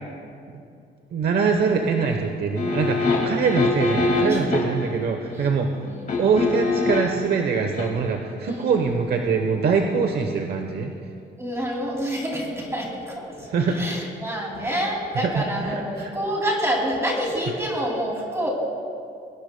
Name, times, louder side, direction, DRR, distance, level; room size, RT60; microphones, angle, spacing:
voice 1, 1.1-5.7 6.2-10.9 13.5-13.8 15.3-16.1, right 5 dB, 60° right, 3 dB, 0.9 m, -23 dB
sound 1, 2.5-4.9 6.1-7.2 7.7-7.9, left 3 dB, 45° left, 2.1 m, -23 dB
voice 2, 4.2-4.6 5.3-5.5 5.8-6.3 8.4-9.2 11.4-18.5, equal, 15° right, -1 dB, 2.5 m, -28 dB
23.0 x 17.5 x 2.2 m, 2.5 s
cardioid pair, 145°, 19 cm